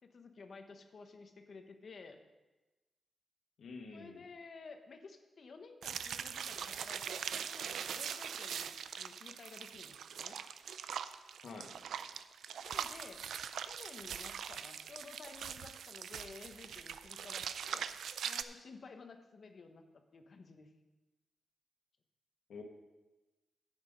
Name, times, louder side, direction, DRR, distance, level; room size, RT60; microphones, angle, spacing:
voice 1, 0.0-2.2 3.9-10.4 12.6-13.2 13.6-17.9 18.2-20.7, left 4 dB, 55° left, 6 dB, 1.1 m, -53 dB
voice 2, 3.6-4.2 11.4-11.7 22.5-22.6, left 4 dB, 75° left, 2 dB, 1.6 m, -48 dB
sound 1, 5.8-18.4, right 8 dB, 85° right, 0.4 m, -42 dB
9.5 x 8.0 x 5.2 m, 1.1 s
cardioid pair, 80°, 0 cm